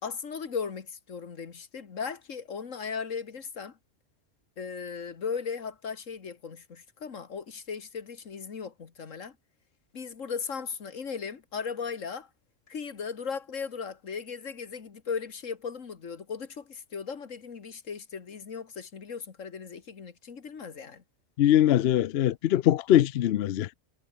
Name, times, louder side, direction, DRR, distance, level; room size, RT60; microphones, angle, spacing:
voice 1, 0.0-3.8 4.6-9.4 9.9-12.3 12.7-21.0, left 6 dB, 90° left, 2.0 m, -37 dB
voice 2, 21.4-23.7, left 12 dB, 65° left, 0.7 m, -22 dB
omnidirectional pair, 1.3 m